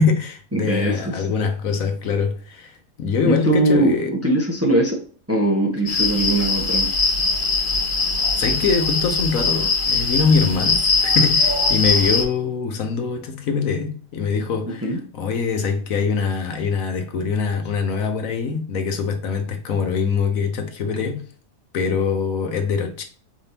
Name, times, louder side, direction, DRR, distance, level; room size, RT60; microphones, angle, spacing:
voice 1, 0.0-4.1 8.3-21.2 21.7-23.0, left 5 dB, 70° left, 1.2 m, -23 dB
voice 2, 0.5-1.2 3.2-5.0 5.3-6.9 14.7-15.0, right 1 dB, 10° right, 0.8 m, -21 dB
sound 1, 5.9-12.2, left 4 dB, 40° left, 0.9 m, -21 dB
4.9 x 3.5 x 2.8 m
omnidirectional pair, 1.5 m